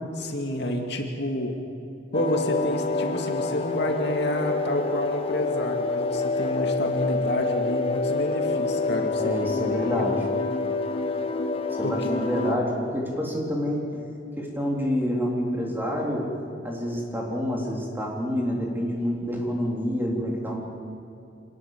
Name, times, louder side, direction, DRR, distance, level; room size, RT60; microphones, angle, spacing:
voice 1, 0.2-1.5 2.1-10.1 11.8-12.1, left 1 dB, 60° left, 2 dB, 2.5 m, -29 dB
sound 1, 2.1-12.6, left 3 dB, 30° left, 1.2 m, -27 dB
voice 2, 9.2-10.2 11.8-14.0 14.4-16.3 16.6-20.6, equal, 10° right, -2 dB, 3.6 m, -28 dB
26.0 x 19.5 x 7.4 m, 2.7 s
head